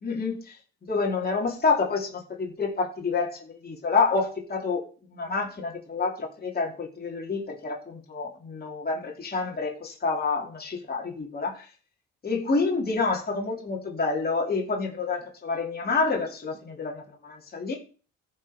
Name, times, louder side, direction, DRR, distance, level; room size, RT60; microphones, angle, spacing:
voice 1, 0.0-0.6 0.9-4.8 5.1-11.7 12.2-17.8, left 4 dB, 30° left, 2.9 m, -28 dB
14.5 x 5.6 x 4.9 m
cardioid pair, 90°, 30 cm